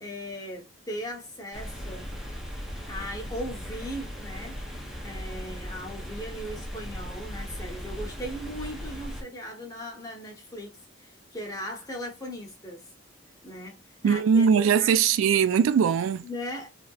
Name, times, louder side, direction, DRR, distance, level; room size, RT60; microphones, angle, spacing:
voice 1, 0.0-2.2 2.9-4.6 5.0-12.9 13.4-14.9 16.2-16.7, equal, 15° left, 0.9 m, -38 dB
sound 1, 1.5-9.2, equal, ahead, 0.6 m, -38 dB
voice 2, 14.0-16.2, right 7 dB, 75° right, 0.3 m, -21 dB
3.3 x 2.8 x 2.3 m
head